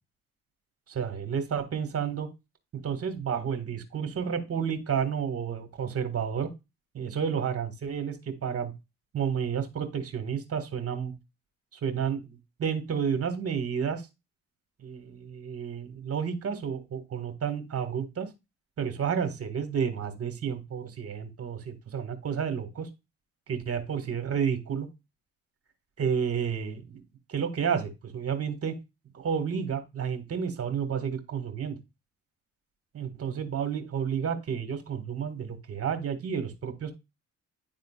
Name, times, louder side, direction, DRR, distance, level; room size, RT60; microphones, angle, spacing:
voice 1, 0.9-2.3 2.7-6.5 6.9-8.7 9.1-11.1 11.7-14.0 14.8-18.3 18.8-22.9 23.5-24.9 26.0-27.0 27.3-28.8 29.1-31.8 32.9-36.9, right 7 dB, 50° right, 8 dB, 1.7 m, -31 dB
10.5 x 3.7 x 2.4 m, 0.23 s
cardioid pair, 90°, 30 cm